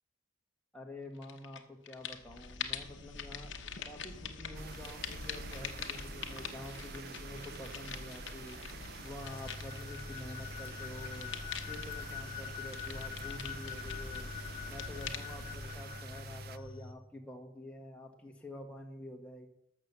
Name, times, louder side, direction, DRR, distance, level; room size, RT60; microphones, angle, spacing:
voice 1, 0.7-3.5 3.8-8.6 9.0-11.3 11.6-14.3 14.7-19.5, left 1 dB, 5° left, 0 dB, 1.5 m, -48 dB
sound 1, 1.2-1.6 1.9-16.9, left 5 dB, 65° left, 0.9 m, -44 dB
sound 2, 4.5-16.6, right 8 dB, 50° right, 0.4 m, -50 dB
sound 3, 9.2-16.9, left 6 dB, 25° left, 0.7 m, -44 dB
12.5 x 6.1 x 6.8 m, 0.84 s
head